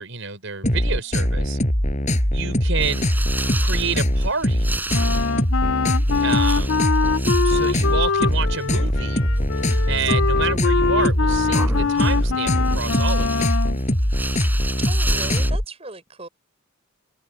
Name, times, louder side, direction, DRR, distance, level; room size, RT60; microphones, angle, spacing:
voice 1, 0.0-1.6 2.3-3.1 3.6-4.8 6.2-6.8 7.4-9.2 9.9-13.5, right 5 dB, 65° right, 5.4 m, -29 dB
sound 1, 0.6-15.6, equal, 35° left, 6.4 m, -21 dB
sound 2, 2.8-15.5, right 2 dB, 10° right, 6.7 m, -33 dB
Wind instrument woodwind instrument, 4.9-13.8, left 5 dB, 70° left, 0.6 m, -23 dB
voice 2, 14.9-16.3, right 2 dB, 30° right, 6.2 m, -37 dB
head